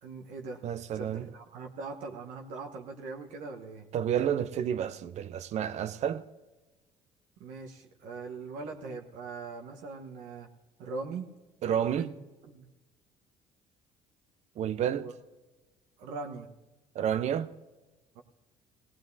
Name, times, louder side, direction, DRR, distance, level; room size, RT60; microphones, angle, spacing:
voice 1, 0.0-0.6 0.9-3.9 7.4-10.5 10.8-11.3 11.7-12.1 12.5-12.7 15.0-15.1 16.0-16.5 18.1-18.2, right 4 dB, 75° right, 1.2 m, -41 dB
voice 2, 0.6-1.3 3.9-6.2 11.6-12.1 14.6-15.1 16.9-17.5, right 9 dB, 60° right, 0.7 m, -30 dB
19.0 x 17.0 x 2.7 m
hypercardioid pair, 65°, 14 cm